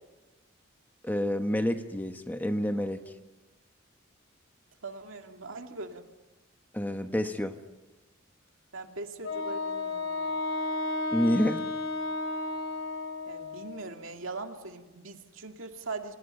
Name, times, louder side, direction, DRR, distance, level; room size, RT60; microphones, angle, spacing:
voice 1, 1.0-3.0 6.7-7.6 11.1-11.6, equal, 10° left, 7 dB, 1.1 m, -28 dB
voice 2, 4.8-6.1 8.7-10.4 13.3-16.1, right 3 dB, 75° right, 4 dB, 2.2 m, -41 dB
Wind instrument woodwind instrument, 9.2-13.9, left 2 dB, 70° left, 2.9 m, -33 dB
30.0 x 26.0 x 5.6 m, 1.1 s
head